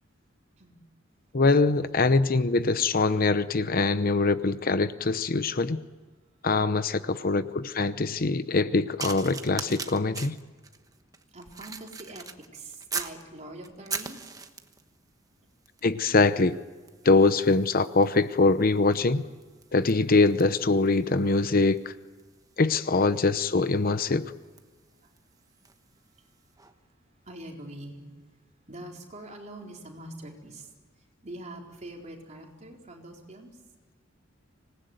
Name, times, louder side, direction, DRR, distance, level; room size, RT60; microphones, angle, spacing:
voice 1, 1.3-5.8 6.4-10.4 15.8-16.6 17.0-19.2 19.7-21.9 22.6-24.3, left 3 dB, 45° left, 12 dB, 0.8 m, -23 dB
voice 2, 7.0-7.4 11.3-14.2 24.0-24.1 25.0-25.1 26.2-26.3 26.8-26.9 27.2-28.0 28.3-28.4 28.7-33.6, right 1 dB, 35° right, 0 dB, 4.2 m, -44 dB
sound 1, 9.0-13.2 13.6-14.9 15.7-15.9 16.2-25.9 26.6-26.7, right 5 dB, 20° right, 1.2 m, -41 dB
26.0 x 19.5 x 9.2 m, 1.3 s
head